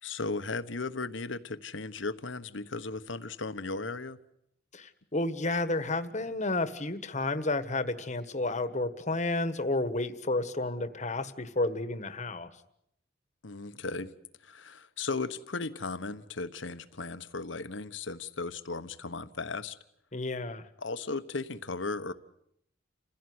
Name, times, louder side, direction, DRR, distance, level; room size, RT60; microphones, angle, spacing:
voice 1, 0.0-4.2 13.4-14.1 14.4-19.8 20.8-22.1, left 3 dB, 70° left, 1.2 m, -36 dB
voice 2, 4.7-12.5 20.1-20.7, left 2 dB, 35° left, 1.5 m, -31 dB
29.0 x 16.0 x 9.6 m
head